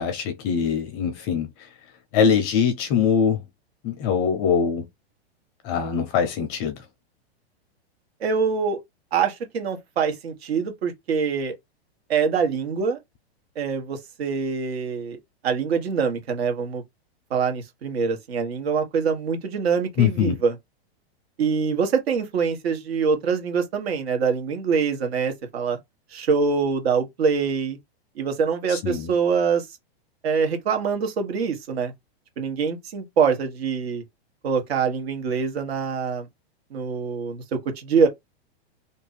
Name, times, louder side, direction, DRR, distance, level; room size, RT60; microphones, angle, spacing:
voice 1, 0.0-1.5 2.1-3.4 3.8-4.9 5.6-6.8 20.0-20.3 28.7-29.1, left 7 dB, 25° left, 0.5 m, -22 dB
voice 2, 8.2-8.8 9.1-11.5 12.1-13.0 13.5-15.2 15.4-16.8 17.3-20.5 21.4-25.8 26.1-27.8 28.2-29.6 30.2-31.9 32.4-34.0 34.4-36.3 36.7-38.1, right 5 dB, 70° right, 1.4 m, -24 dB
2.8 x 2.6 x 3.9 m
supercardioid pair, 160°, 32 cm